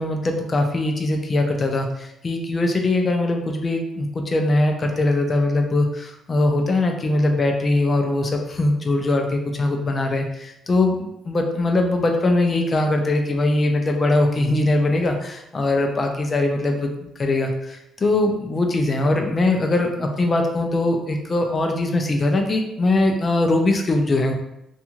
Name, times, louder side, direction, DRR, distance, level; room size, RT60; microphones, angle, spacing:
voice 1, 0.0-24.3, left 2 dB, 30° left, 3 dB, 0.4 m, -21 dB
2.6 x 2.3 x 2.9 m, 0.82 s
cardioid pair, 115°, 0 cm